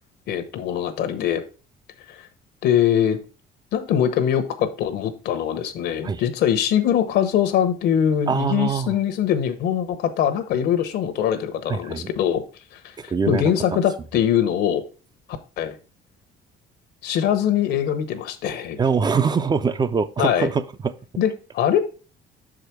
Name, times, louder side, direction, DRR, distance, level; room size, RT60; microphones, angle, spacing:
voice 1, 0.3-1.4 2.1-2.3 2.6-3.2 3.7-12.5 12.7-14.8 15.6-15.8 17.0-18.8 20.2-20.5 21.2-21.8, left 9 dB, 75° left, 1.0 m, -22 dB
voice 2, 8.3-8.9 11.7-12.1 13.0-13.8 18.8-20.9, right 5 dB, 25° right, 0.5 m, -23 dB
6.4 x 5.0 x 4.6 m
cardioid pair, 110°, 17 cm